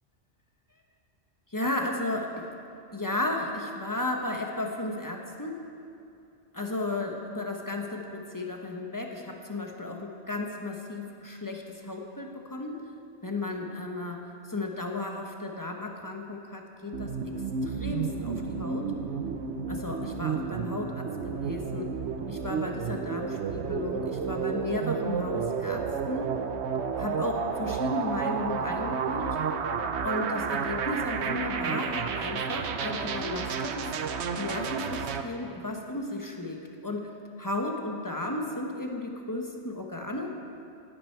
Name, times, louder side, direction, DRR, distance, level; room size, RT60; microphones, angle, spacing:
voice 1, 1.5-2.5 2.9-5.6 6.5-12.8 13.2-17.3 17.6-18.9 19.7-21.9 22.3-26.4 27.0-29.4 30.0-34.0 34.4-37.1 37.4-40.3, left 2 dB, 15° left, 2 dB, 1.1 m, -34 dB
sound 1, 16.9-35.2, right 6 dB, 70° right, 1.0 m, -31 dB
17.0 x 10.0 x 4.6 m, 2.6 s
omnidirectional pair, 1.2 m